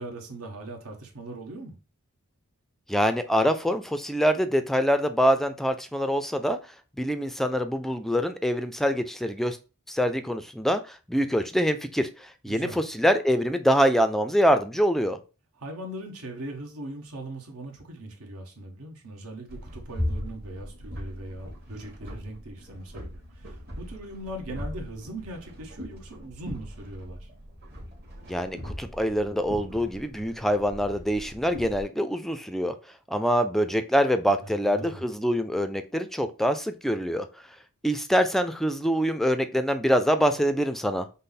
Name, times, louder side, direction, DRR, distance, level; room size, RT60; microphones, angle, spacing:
voice 1, 0.0-1.7 12.4-12.8 15.6-27.3 34.4-35.0, right 1 dB, 80° right, 1.2 m, -40 dB
voice 2, 2.9-6.6 7.0-9.6 9.9-15.2 28.3-32.8 33.1-37.3 37.8-41.1, equal, ahead, 0.3 m, -25 dB
sound 1, 19.5-31.8, equal, 50° right, 1.5 m, -39 dB
5.4 x 2.0 x 4.0 m
head